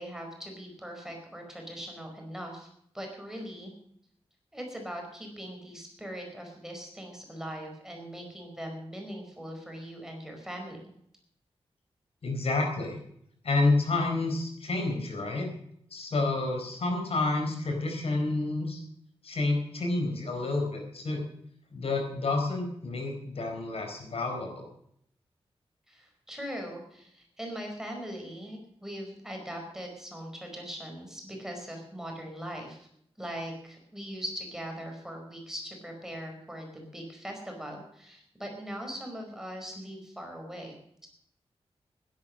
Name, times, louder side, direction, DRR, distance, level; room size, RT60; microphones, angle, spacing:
voice 1, 0.0-2.7 2.9-3.7 4.5-10.8 25.9-32.9 33.2-40.8, equal, 5° right, 2 dB, 4.7 m, -40 dB
voice 2, 12.2-13.0 13.4-15.5 15.9-18.8 19.2-21.2 21.7-24.7, left 2 dB, 70° left, 3 dB, 4.5 m, -29 dB
16.0 x 11.0 x 6.4 m, 0.70 s
wide cardioid pair, 130°, 11 cm